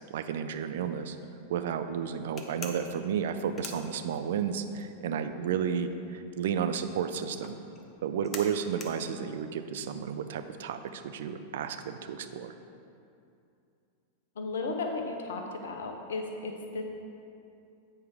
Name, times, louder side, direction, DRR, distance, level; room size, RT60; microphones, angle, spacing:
voice 1, 0.1-1.2 1.5-7.6 8.0-12.5, right 7 dB, 55° right, 9 dB, 0.4 m, -32 dB
sound 1, 2.4-4.6 4.9-10.7, left 4 dB, 25° left, 0.8 m, -45 dB
voice 2, 14.4-16.8, left 3 dB, 65° left, 3 dB, 0.8 m, -35 dB
8.6 x 4.7 x 4.8 m, 2.6 s
figure-of-eight pair, 90°, 0 cm